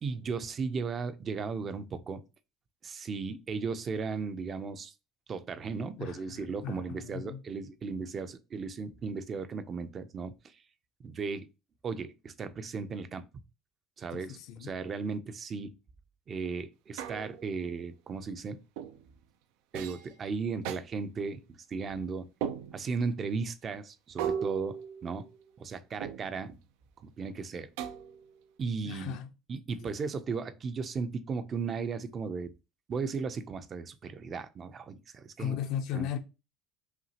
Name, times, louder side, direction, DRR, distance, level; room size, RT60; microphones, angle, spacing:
voice 1, 0.0-2.2 2.8-4.9 5.3-10.6 11.0-11.5 11.8-13.2 14.0-15.7 16.3-18.6 19.7-21.4 21.7-22.3 22.7-25.3 25.6-26.6 27.0-27.7 28.6-29.2 29.5-32.5 32.9-35.6 35.9-36.1, right 5 dB, 30° right, 0.5 m, -36 dB
voice 2, 6.0-7.4 14.1-14.7 28.8-29.3 29.8-29.9 35.4-36.2, left 9 dB, 65° left, 0.6 m, -37 dB
sound 1, 17.0-17.6 18.8-19.1 19.7-20.1 20.6-20.8 22.4-23.0 24.2-25.5 26.0-26.5 27.8-28.4, right 8 dB, 85° right, 0.5 m, -37 dB
5.7 x 2.4 x 2.8 m
cardioid pair, 130°, 0 cm